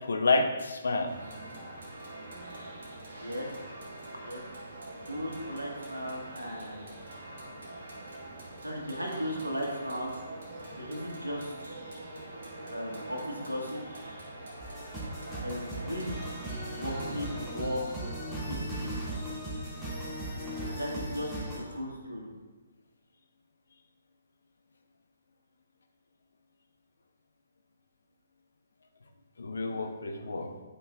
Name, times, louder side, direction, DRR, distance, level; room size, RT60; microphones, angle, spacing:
voice 1, 0.0-1.1 15.2-15.4 29.4-30.5, left 3 dB, 65° left, 5 dB, 0.9 m, -29 dB
sound 1, 1.1-17.5, right 1 dB, 55° right, 2.0 m, -44 dB
voice 2, 3.2-3.5 4.2-4.4 5.1-6.9 8.6-10.1 10.8-11.8 12.7-14.0 15.4-16.1 16.6-17.8 18.5-18.9 20.6-22.3, equal, 85° right, -1 dB, 1.8 m, -36 dB
sound 2, 14.6-21.6, right 1 dB, ahead, 2.4 m, -37 dB
11.0 x 5.6 x 2.5 m, 1.3 s
figure-of-eight pair, 130°, 0 cm